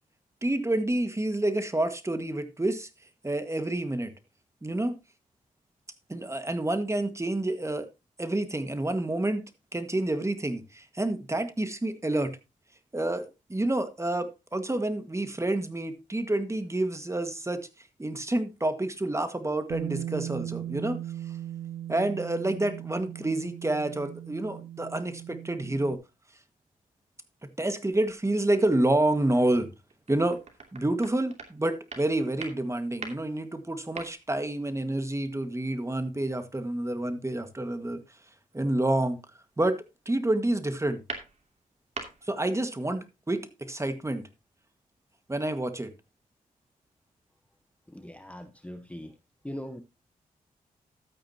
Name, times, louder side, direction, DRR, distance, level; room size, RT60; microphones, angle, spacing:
voice 1, 0.4-2.9 3.2-4.1 4.6-4.9 6.1-7.9 8.2-9.5 9.7-12.4 12.9-17.6 18.0-21.0 21.9-26.0 27.6-29.7 30.1-30.4 30.7-38.0 38.5-39.2 39.6-41.0 42.3-44.2 45.3-45.9, right 1 dB, 20° right, 1.8 m, -28 dB
Bass guitar, 19.7-26.0, right 12 dB, 80° right, 0.5 m, -38 dB
sound 1, 27.9-28.4 28.9-29.0 29.6-34.7 35.1-35.6 37.6-37.7 38.8-39.1 39.5-40.1 40.5-42.4, right 3 dB, 50° right, 2.8 m, -44 dB
voice 2, 47.9-49.2 49.4-49.8, equal, 10° left, 1.0 m, -40 dB
13.0 x 8.9 x 2.9 m
cardioid pair, 55°, 15 cm